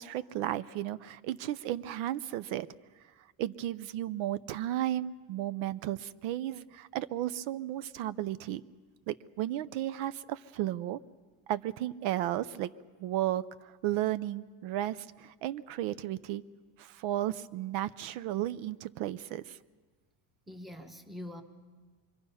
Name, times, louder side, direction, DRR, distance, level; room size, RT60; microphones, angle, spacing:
voice 1, 0.0-2.7 3.4-8.6 9.1-11.0 11.5-12.7 13.0-16.5 16.8-19.6, right 13 dB, 70° right, 15 dB, 0.7 m, -34 dB
voice 2, 20.5-21.4, left 1 dB, ahead, 5 dB, 1.0 m, -44 dB
26.5 x 23.0 x 5.6 m, 1.4 s
cardioid pair, 175°, 49 cm